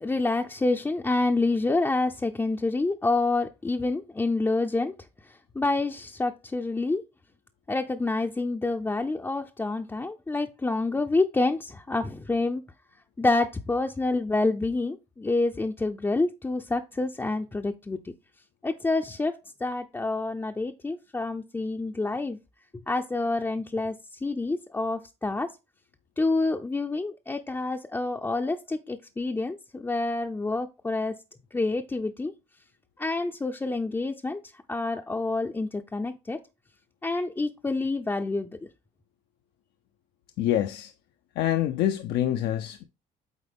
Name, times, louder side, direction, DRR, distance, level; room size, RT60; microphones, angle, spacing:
voice 1, 0.0-4.9 5.3-7.0 7.7-12.6 13.2-18.1 18.6-19.3 19.6-22.4 22.9-23.9 24.2-25.5 26.2-31.2 31.5-32.3 33.0-34.4 34.7-36.4 37.0-38.6, left 3 dB, 15° left, 0.5 m, -28 dB
voice 2, 40.4-40.9 41.4-42.8, left 12 dB, 80° left, 0.6 m, -26 dB
8.2 x 4.2 x 3.5 m
cardioid pair, 110°, 17 cm